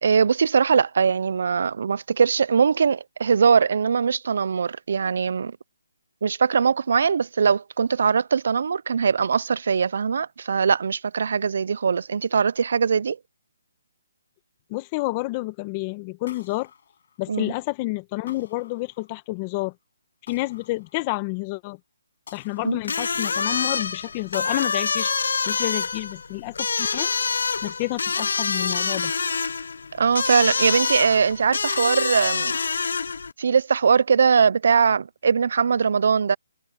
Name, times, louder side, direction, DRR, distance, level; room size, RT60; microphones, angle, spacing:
voice 1, 0.0-5.6 6.2-13.2 17.3-17.5 22.6-22.8 30.0-32.5 33.4-36.4, right 6 dB, 55° right, 0.4 m, -21 dB
voice 2, 14.7-16.7 17.2-19.7 20.3-21.8 22.3-25.1 25.5-27.1 27.6-29.1, left 21 dB, 20° left, 1.2 m, -29 dB
sound 1, 16.3-17.6 18.3-19.4 20.3-21.5 22.3-23.4, left 7 dB, 50° left, 5.3 m, -51 dB
sound 2, 22.8-33.3, left 5 dB, 70° left, 0.4 m, -26 dB
hypercardioid pair, 165°, 0 cm